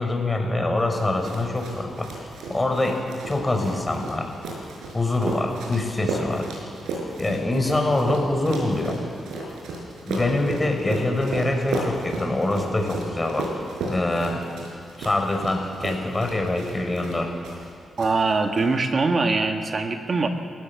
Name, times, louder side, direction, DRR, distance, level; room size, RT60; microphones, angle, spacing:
voice 1, 0.0-2.1 2.5-3.0 3.3-4.3 4.9-6.5 7.2-9.0 10.1-13.5 13.9-14.4 15.0-17.3, left 2 dB, 25° left, 3 dB, 5.3 m, -24 dB
sound 1, 0.9-17.7 18.0-18.6, right 2 dB, 90° right, 5.7 m, -34 dB
voice 2, 18.0-20.3, right 3 dB, 50° right, 5 dB, 1.8 m, -22 dB
27.5 x 16.0 x 7.2 m, 2.4 s
supercardioid pair, 55°, 0 cm